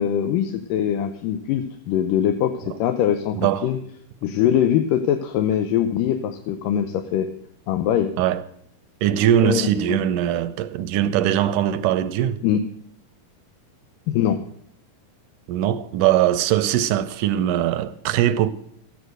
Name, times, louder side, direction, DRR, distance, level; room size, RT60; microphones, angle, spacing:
voice 1, 0.0-3.8 4.2-7.3 7.7-8.1 9.4-10.0 12.4-12.6 14.1-14.4, left 10 dB, 80° left, 2.4 m, -22 dB
voice 2, 3.4-3.7 8.2-8.4 9.0-12.4 15.5-18.5, right 11 dB, 80° right, 2.1 m, -21 dB
13.5 x 9.5 x 6.5 m
omnidirectional pair, 3.9 m